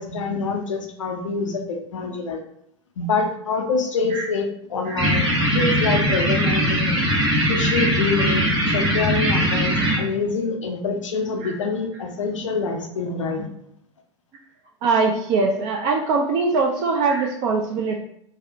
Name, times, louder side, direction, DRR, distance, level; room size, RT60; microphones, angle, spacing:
voice 1, 0.0-2.4 3.0-5.3 5.5-6.9 7.5-13.5, left 4 dB, 85° left, 3 dB, 0.5 m, -26 dB
sound 1, 5.0-10.0, equal, 25° right, 1.2 m, -20 dB
voice 2, 14.8-18.0, right 4 dB, 50° right, 1 dB, 0.4 m, -22 dB
2.6 x 2.0 x 2.6 m, 0.73 s
hypercardioid pair, 90°, 16 cm